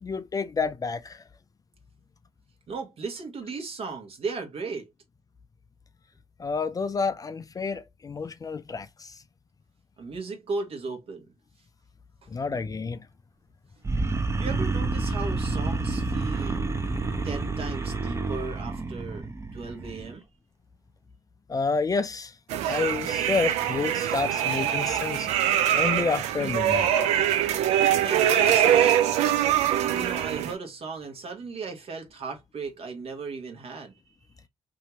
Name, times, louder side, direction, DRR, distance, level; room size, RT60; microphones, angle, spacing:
voice 1, 0.0-1.2 6.4-9.2 12.3-13.0 21.5-22.3 22.7-25.3 25.7-26.9, left 4 dB, 30° left, 0.4 m, -29 dB
voice 2, 2.7-4.9 10.0-11.2 12.5-12.8 14.4-16.7 17.2-19.2 19.5-20.2 28.0-29.0 29.9-34.2, right 4 dB, 55° right, 1.0 m, -36 dB
sound 1, 13.8-20.1, right 3 dB, 25° right, 0.6 m, -29 dB
sound 2, 22.5-30.5, right 10 dB, 75° right, 0.4 m, -23 dB
2.7 x 2.4 x 2.9 m
hypercardioid pair, 45°, 12 cm